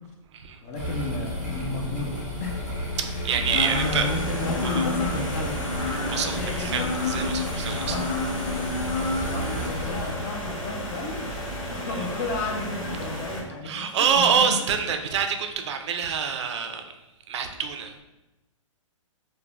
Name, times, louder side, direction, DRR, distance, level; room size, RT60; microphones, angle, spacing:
voice 1, 0.6-2.1 2.4-2.7 3.1-5.6 6.2-6.9 7.7-8.1 9.3-14.7, left 3 dB, 25° left, 1 dB, 0.4 m, -33 dB
sound 1, 0.7-10.1, equal, ahead, 0.8 m, -33 dB
voice 2, 3.0-4.1 4.6-4.8 6.1-8.0 13.6-16.8 17.3-17.9, right 7 dB, 60° right, 6 dB, 0.4 m, -26 dB
sound 2, 3.4-13.4, equal, 85° left, 1.1 m, -34 dB
sound 3, 3.5-9.7, left 2 dB, 65° left, 0.8 m, -31 dB
2.4 x 2.1 x 3.0 m, 1.0 s
hypercardioid pair, 155°, 17 cm